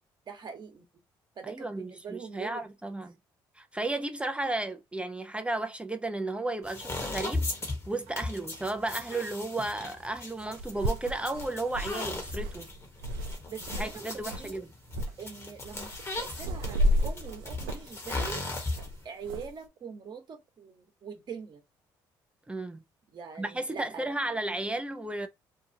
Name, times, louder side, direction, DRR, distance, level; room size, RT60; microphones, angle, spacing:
voice 1, 0.3-0.8 1.4-2.7 13.5-14.7 15.2-15.9 16.2-18.4 19.0-21.6 23.1-24.1, right 6 dB, 45° right, 1.0 m, -43 dB
voice 2, 1.4-3.2 3.6-7.5 7.9-12.7 13.7-14.7 22.5-22.8 23.4-25.3, right 2 dB, 10° right, 0.4 m, -34 dB
sound 1, 6.6-19.1, left 2 dB, 25° left, 1.1 m, -37 dB
sound 2, 8.1-8.2 10.0-10.1 10.4-13.9 14.2-14.5 14.9-15.1 15.6-19.5, equal, 85° right, 0.5 m, -32 dB
2.7 x 2.3 x 2.7 m
supercardioid pair, 60°, 10 cm